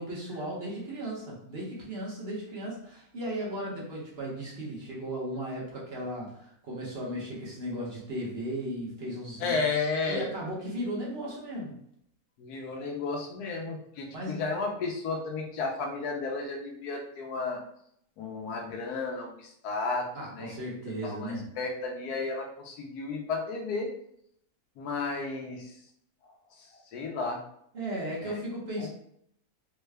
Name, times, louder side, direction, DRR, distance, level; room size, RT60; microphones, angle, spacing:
voice 1, 0.0-9.6 10.1-11.8 14.1-14.4 20.1-21.5 27.7-28.9, right 1 dB, 50° right, -4 dB, 1.0 m, -36 dB
voice 2, 9.4-10.3 12.4-17.6 18.2-20.1 20.3-20.6 21.0-23.9 24.8-25.8 26.2-27.4 28.2-28.3 28.8-28.9, left 4 dB, 90° left, 1 dB, 1.2 m, -33 dB
3.6 x 2.2 x 3.2 m, 0.70 s
omnidirectional pair, 1.6 m